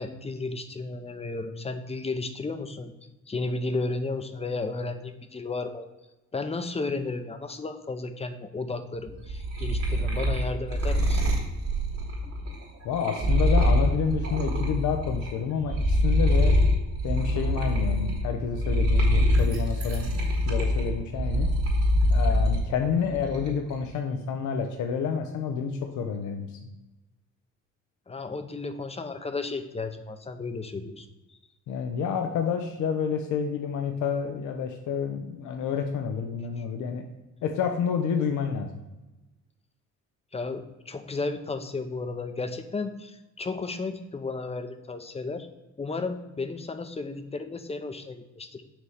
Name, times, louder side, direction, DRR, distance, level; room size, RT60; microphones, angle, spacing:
voice 1, 0.0-2.9 3.3-5.9 6.3-11.2 28.1-31.4 40.3-45.5 45.8-48.6, left 3 dB, 20° left, 8 dB, 0.6 m, -33 dB
sound 1, 9.1-15.3 15.6-22.6 23.0-23.7, equal, 60° right, 2.0 m, -24 dB
voice 2, 12.8-16.6 17.0-21.5 22.1-26.6 31.7-37.0 37.4-38.8, left 6 dB, 80° left, 5 dB, 0.7 m, -29 dB
5.9 x 3.2 x 5.5 m, 1.1 s
cardioid pair, 90°, 30 cm